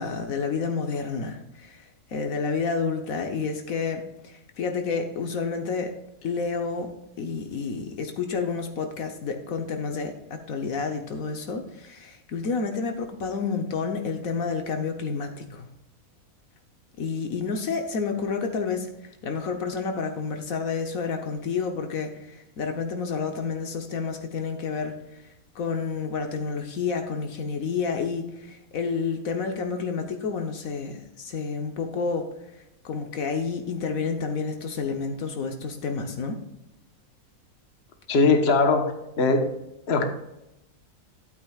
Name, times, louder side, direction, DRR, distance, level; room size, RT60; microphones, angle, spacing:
voice 1, 0.0-1.8 2.1-5.9 6.2-6.9 7.2-15.7 17.0-18.9 19.2-24.9 25.5-32.3 32.8-36.4, left 5 dB, 75° left, 5 dB, 1.4 m, -30 dB
voice 2, 38.1-39.5 39.9-40.0, left 4 dB, 50° left, 5 dB, 1.3 m, -21 dB
12.5 x 8.6 x 2.4 m, 0.87 s
omnidirectional pair, 1.5 m